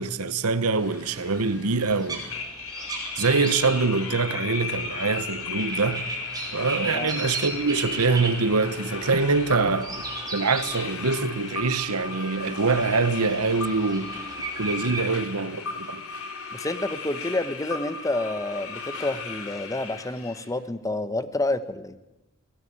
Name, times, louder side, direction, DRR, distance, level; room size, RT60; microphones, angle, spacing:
voice 1, 0.0-2.2 3.2-6.1 6.5-10.0 10.3-14.1 14.6-16.0, right 4 dB, 85° right, 1.2 m, -24 dB
sound 1, 0.7-20.5, left 5 dB, 70° left, 4.0 m, -36 dB
sound 2, 1.0-15.1, right 2 dB, 15° right, 5.8 m, -37 dB
voice 2, 6.9-7.2 16.5-22.0, left 2 dB, 15° left, 1.0 m, -29 dB
22.5 x 18.0 x 8.8 m
head